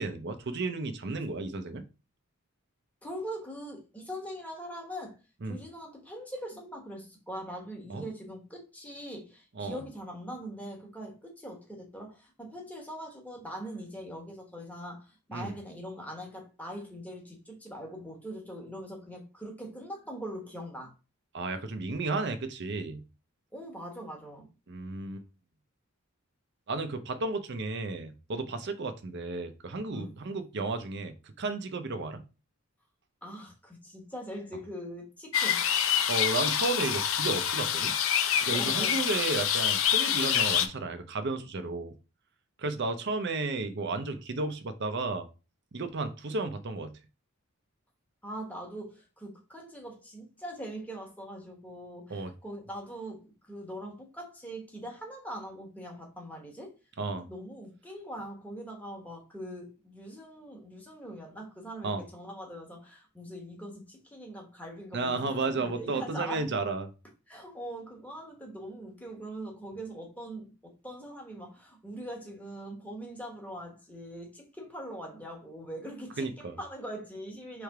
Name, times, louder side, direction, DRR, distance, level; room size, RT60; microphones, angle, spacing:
voice 1, 0.0-1.8 5.4-5.6 7.9-8.1 9.6-9.8 15.3-15.5 21.3-23.0 24.7-25.2 26.7-32.2 36.1-37.9 38.4-41.9 42.6-45.3 45.7-46.9 52.1-52.3 57.0-57.3 61.8-62.0 64.9-66.9 76.2-76.6, right 3 dB, 50° right, 0.6 m, -33 dB
voice 2, 3.0-5.2 5.4-20.9 23.5-24.5 29.9-30.1 33.2-35.7 38.5-39.0 48.2-56.7 57.1-66.5 67.3-77.6, equal, 5° left, 1.2 m, -42 dB
sound 1, 35.3-40.7, left 9 dB, 60° left, 0.5 m, -26 dB
3.4 x 3.3 x 4.7 m
head